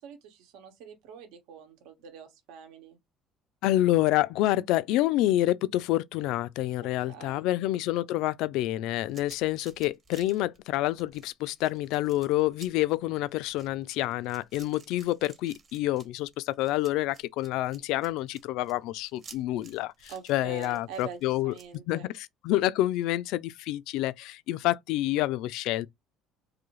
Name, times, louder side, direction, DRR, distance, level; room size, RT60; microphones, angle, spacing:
voice 1, 0.0-3.0 7.1-7.5 20.1-22.1, right 7 dB, 90° right, 1.1 m, -45 dB
voice 2, 3.6-21.5 21.9-25.9, left 15 dB, 75° left, 0.3 m, -28 dB
sound 1, 9.0-21.8, right 5 dB, 30° right, 0.8 m, -54 dB
3.8 x 2.7 x 3.0 m
cardioid pair, 160°, 0 cm